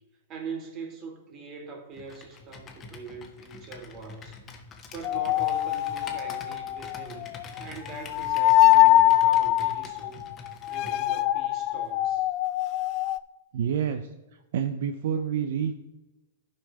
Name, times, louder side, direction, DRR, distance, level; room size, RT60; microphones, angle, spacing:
voice 1, 0.3-4.4 4.9-7.3 7.6-10.2 10.7-12.3, right 4 dB, 35° right, 3 dB, 2.1 m, -42 dB
Computer keyboard, 1.9-11.0, left 4 dB, 25° left, 1.3 m, -45 dB
sound 1, 5.0-7.6 7.9-13.2, left 15 dB, 45° left, 0.4 m, -23 dB
voice 2, 13.5-14.1 14.5-15.7, right 8 dB, 65° right, 9 dB, 0.5 m, -28 dB
11.5 x 5.4 x 4.7 m, 1.1 s
hypercardioid pair, 120°, 0 cm